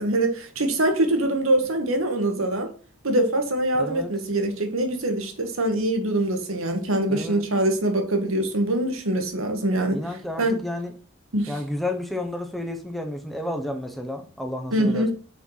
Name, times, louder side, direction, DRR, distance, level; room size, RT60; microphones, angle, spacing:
voice 1, 0.0-2.7 3.0-10.0 10.4-10.6 11.3-11.5 14.7-15.1, right 1 dB, 75° right, 5 dB, 1.6 m, -23 dB
voice 2, 3.7-4.1 7.1-7.4 9.9-10.9 11.5-15.1, left 1 dB, ahead, 4 dB, 0.9 m, -31 dB
6.2 x 4.6 x 5.5 m, 0.39 s
head